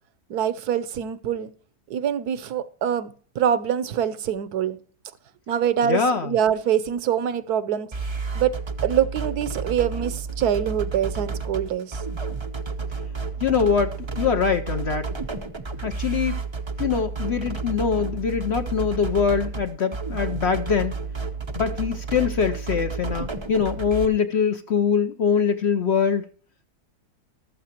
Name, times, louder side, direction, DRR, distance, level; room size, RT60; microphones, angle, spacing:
voice 1, 0.3-1.5 1.9-4.8 5.5-7.9 8.3-8.5 8.8-12.0, right 9 dB, 70° right, 1.3 m, -24 dB
voice 2, 5.8-6.3 13.4-15.1 15.8-16.4 16.8-20.9 21.5-26.2, left 6 dB, 55° left, 0.7 m, -23 dB
sound 1, 7.9-24.0, right 4 dB, 30° right, 0.5 m, -31 dB
14.5 x 12.5 x 2.9 m
omnidirectional pair, 1.8 m